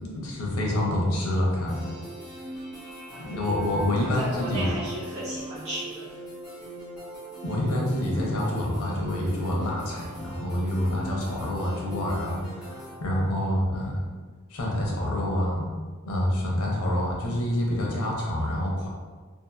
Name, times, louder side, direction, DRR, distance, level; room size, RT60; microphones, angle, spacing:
voice 1, 0.0-1.8 3.2-4.7 7.4-14.0 14.5-15.6 16.0-18.9, left 1 dB, 90° left, -2 dB, 0.7 m, -27 dB
sound 1, 1.7-13.0, right 1 dB, 5° right, 1.0 m, -41 dB
voice 2, 3.1-3.5 4.0-6.1 13.3-13.6, right 1 dB, 65° right, -11 dB, 1.1 m, -35 dB
2.7 x 2.4 x 2.3 m, 1.4 s
head